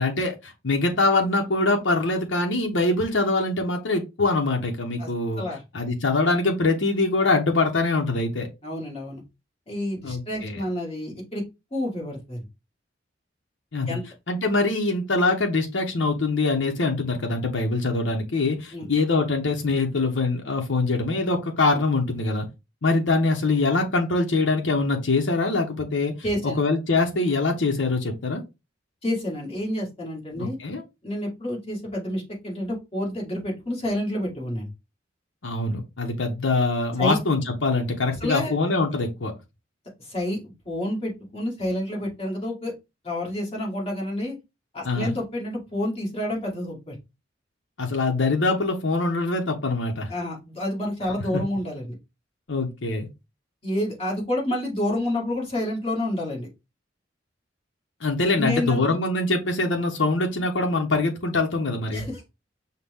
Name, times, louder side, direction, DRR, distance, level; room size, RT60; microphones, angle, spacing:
voice 1, 0.0-5.4 5.7-8.5 10.0-10.6 13.7-14.0 14.3-22.5 22.8-26.1 26.6-28.4 30.4-30.8 35.4-39.3 44.8-45.2 47.8-50.1 51.3-51.4 52.5-53.1 58.0-62.1, left 3 dB, 75° left, 0.8 m, -23 dB
voice 2, 8.6-9.2 9.7-11.4 11.7-12.4 13.9-14.0 18.7-18.9 26.2-26.6 29.0-30.6 31.0-34.7 37.0-37.2 38.2-38.6 40.0-42.7 43.0-44.4 44.7-47.0 50.1-51.9 53.6-56.5 58.4-58.8 61.9-62.2, left 1 dB, 35° left, 1.7 m, -29 dB
5.7 x 2.2 x 3.5 m
head